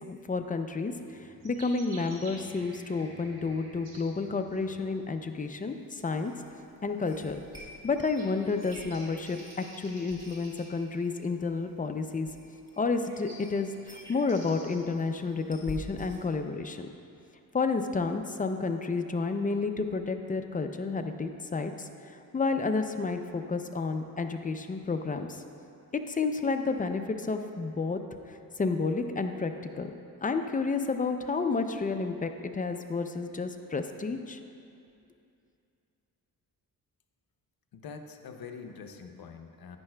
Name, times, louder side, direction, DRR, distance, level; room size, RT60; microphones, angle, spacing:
voice 1, 0.1-0.9 1.4-6.3 6.8-7.4 7.8-9.4 9.8-12.3 12.8-16.9 17.5-21.9 22.3-25.4 26.1-28.0 28.6-29.9 30.2-34.4, left 4 dB, 25° left, 7 dB, 0.4 m, -30 dB
sound 1, 0.9-15.0, right 1 dB, 90° right, 1.7 m, -52 dB
sound 2, 5.5-16.2, left 1 dB, 10° right, 1.8 m, -50 dB
voice 2, 37.7-39.8, left 5 dB, 70° left, 5 dB, 0.7 m, -44 dB
10.5 x 9.3 x 2.2 m, 2.5 s
cardioid pair, 100°, 37 cm